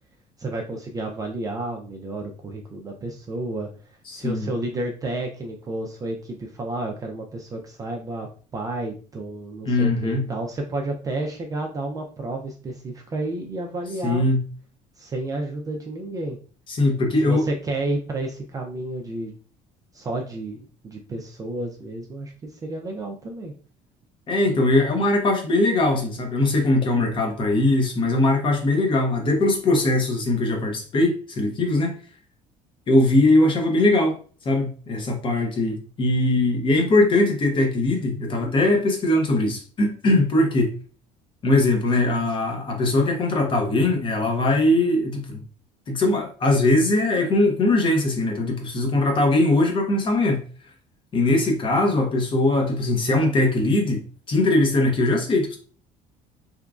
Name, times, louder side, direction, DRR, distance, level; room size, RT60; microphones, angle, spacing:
voice 1, 0.4-3.7 4.1-8.3 8.5-14.3 15.0-16.4 17.2-19.3 19.9-23.5, right 2 dB, 25° right, 2 dB, 0.3 m, -31 dB
voice 2, 4.1-4.5 9.6-10.2 14.0-14.4 16.7-17.5 24.3-31.9 32.9-34.2 34.4-40.7 41.4-45.4 45.9-50.4 51.1-54.0 54.3-55.6, left 2 dB, 35° left, 2 dB, 0.7 m, -21 dB
2.9 x 2.4 x 2.3 m, 0.40 s
cardioid pair, 140°, 15 cm